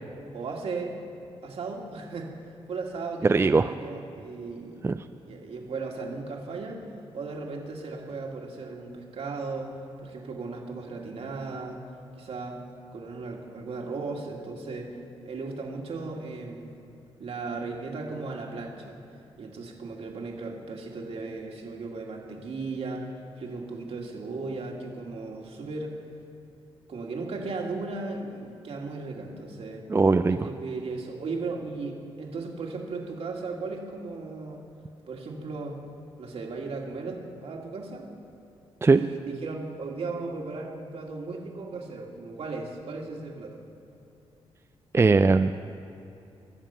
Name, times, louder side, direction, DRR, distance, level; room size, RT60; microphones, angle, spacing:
voice 1, 0.3-1.0 1.4-2.3 2.7-6.8 7.1-9.7 10.0-11.8 12.2-12.6 12.9-14.9 15.2-16.7 17.2-19.0 19.4-23.1 23.3-25.9 26.9-29.8 30.3-34.6 35.1-35.8 36.2-38.1 38.9-43.6, right 3 dB, 70° right, 0 dB, 2.1 m, -36 dB
voice 2, 3.3-3.7 4.8-5.0 29.9-30.4 38.8-39.0 44.9-45.5, right 4 dB, 25° right, 9 dB, 0.4 m, -20 dB
20.0 x 7.4 x 5.7 m, 2.8 s
cardioid pair, 70°, 11 cm